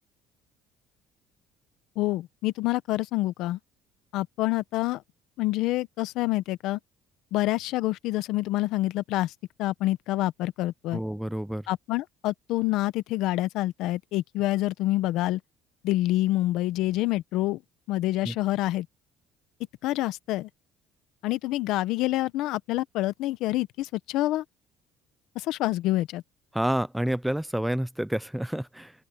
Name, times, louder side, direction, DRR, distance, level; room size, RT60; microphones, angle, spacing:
voice 1, 2.0-3.6 4.1-5.0 5.4-6.8 7.3-9.3 9.6-11.0 11.7-15.4 15.8-17.6 17.9-18.9 19.8-20.5 21.2-24.4 25.3-26.2, left 17 dB, 75° left, 0.9 m, -27 dB
voice 2, 10.9-11.6 18.2-18.3 26.5-28.9, right 1 dB, 5° right, 0.3 m, -29 dB
open air
cardioid pair, 135°, 0 cm